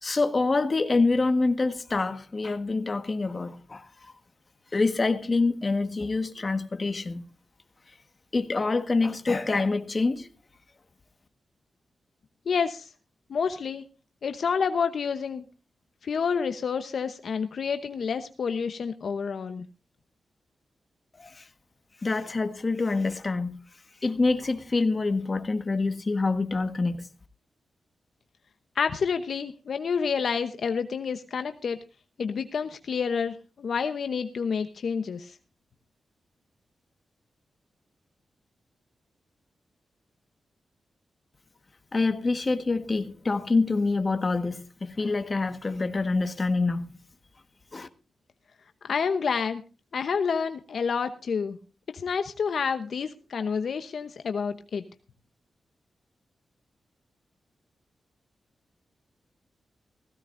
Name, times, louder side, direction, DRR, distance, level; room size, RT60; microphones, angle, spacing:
voice 1, 0.0-4.1 4.7-7.2 8.3-10.3 21.2-21.4 22.0-23.6 24.0-27.1 41.9-46.9 47.7-47.9, left 3 dB, 35° left, 1.4 m, -26 dB
voice 2, 12.5-12.9 13.3-13.8 14.2-15.4 16.0-19.6 28.8-31.8 32.2-35.4 48.8-49.6 49.9-51.6 51.9-54.8, left 6 dB, 70° left, 0.9 m, -29 dB
16.0 x 16.0 x 2.6 m
cardioid pair, 85°, 0 cm